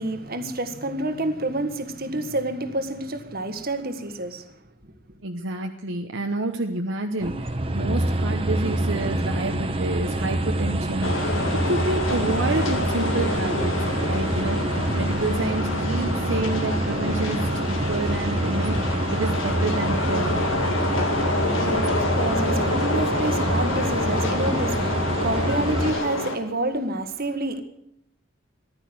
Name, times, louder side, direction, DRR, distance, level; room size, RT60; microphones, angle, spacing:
voice 1, 0.0-4.5 21.1-27.6, right 1 dB, 50° right, 1.6 m, -29 dB
voice 2, 5.2-20.4, right 2 dB, 65° right, 1.1 m, -29 dB
sound 1, 7.2-25.9, right 1 dB, 30° right, 1.3 m, -26 dB
sound 2, 11.0-26.4, left 2 dB, 75° left, 2.2 m, -28 dB
15.0 x 11.5 x 7.9 m
head